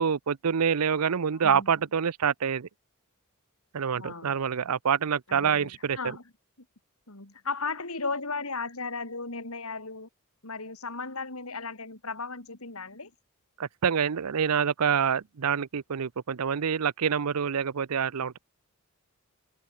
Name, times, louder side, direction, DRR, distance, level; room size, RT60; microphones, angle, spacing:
voice 1, 0.0-2.7 3.7-6.0 13.6-18.4, right 7 dB, 90° right, 0.6 m, -26 dB
voice 2, 1.3-1.7 4.0-4.3 5.3-5.7 6.0-6.2 7.1-10.1 10.4-13.1, left 4 dB, 70° left, 4.2 m, -35 dB
head